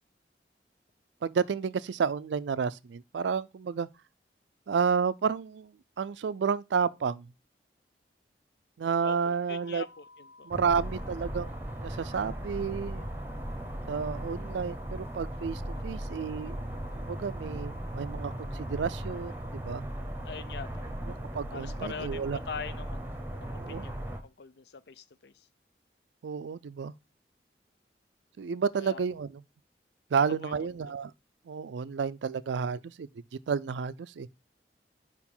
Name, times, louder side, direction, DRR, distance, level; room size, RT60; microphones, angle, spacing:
voice 1, 1.2-3.9 4.7-5.7 6.0-7.3 8.8-9.8 10.4-11.5 11.8-13.0 13.9-16.7 17.0-19.9 21.1-22.4 23.5-23.9 26.2-26.9 28.4-29.3 30.1-31.1 31.5-33.1 33.5-34.3, right 6 dB, 90° right, 0.4 m, -31 dB
voice 2, 9.0-10.5 20.2-20.9 21.5-25.5 28.8-29.0 30.2-30.9, left 5 dB, 70° left, 0.5 m, -43 dB
sound 1, 9.5-19.5, left 2 dB, 85° left, 1.3 m, -54 dB
sound 2, 10.5-24.2, right 1 dB, 10° right, 0.8 m, -37 dB
4.9 x 4.7 x 5.3 m
head